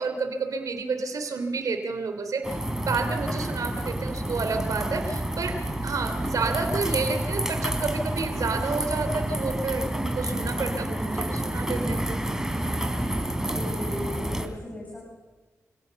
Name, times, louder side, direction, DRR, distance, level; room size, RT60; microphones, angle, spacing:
voice 1, 0.0-12.2, right 4 dB, 75° right, 6 dB, 3.0 m, -30 dB
sound 1, 2.4-14.5, right 1 dB, 10° right, 3.5 m, -29 dB
voice 2, 13.4-15.0, left 1 dB, 25° left, -3 dB, 7.9 m, -36 dB
28.5 x 17.0 x 7.0 m, 1.2 s
cardioid pair, 55°, 6 cm